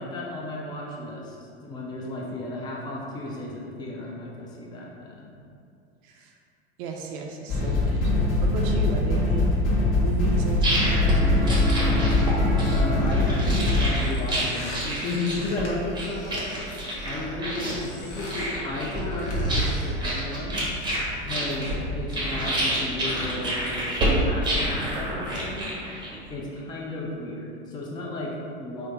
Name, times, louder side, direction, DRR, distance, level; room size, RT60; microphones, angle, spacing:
voice 1, 0.0-1.4 1.6-5.3 12.7-20.6 21.2-23.8 24.3-25.7 26.3-28.9, left 2 dB, 15° left, -3 dB, 0.4 m, -34 dB
voice 2, 6.8-8.1 8.4-9.6 10.0-11.8, right 4 dB, 55° right, 1 dB, 0.4 m, -34 dB
sound 1, 7.5-13.9, left 2 dB, 40° left, 1.1 m, -22 dB
sound 2, 10.2-26.3, equal, 15° right, 0.8 m, -28 dB
sound 3, 13.9-17.4 17.8-18.5 19.0-20.0, left 1 dB, 80° left, 0.9 m, -42 dB
3.3 x 2.0 x 3.2 m, 2.5 s
hypercardioid pair, 85°, 34 cm